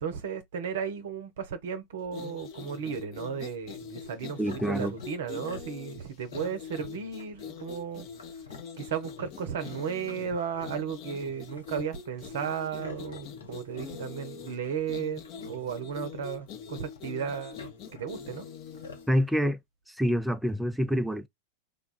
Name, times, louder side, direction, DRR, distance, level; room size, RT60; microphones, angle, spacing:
voice 1, 0.0-8.1 8.8-17.6 17.9-18.5, right 7 dB, 60° right, 0.6 m, -35 dB
sound 1, 2.0-19.1, left 7 dB, 40° left, 0.8 m, -44 dB
sound 2, 4.0-19.4, left 3 dB, 70° left, 0.8 m, -51 dB
voice 2, 4.4-4.9 19.1-19.6 19.9-21.3, equal, 5° right, 0.4 m, -27 dB
3.3 x 2.3 x 3.9 m
figure-of-eight pair, 90°, 0 cm